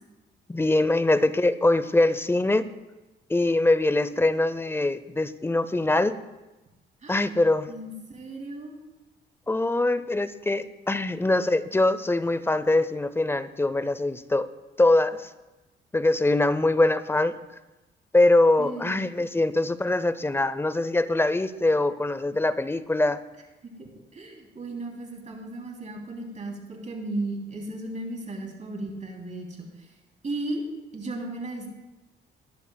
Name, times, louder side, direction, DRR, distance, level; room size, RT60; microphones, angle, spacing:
voice 1, 0.5-2.7 3.3-6.2 7.1-7.7 9.5-14.5 14.8-15.3 15.9-17.3 18.1-23.2, left 2 dB, 10° left, 15 dB, 0.5 m, -23 dB
voice 2, 7.0-7.4 7.7-8.8 18.6-19.0 23.6-29.9 30.2-30.6 30.9-31.7, right 2 dB, 35° right, 0 dB, 3.0 m, -35 dB
19.5 x 11.0 x 2.3 m, 1.0 s
cardioid pair, 90°, 20 cm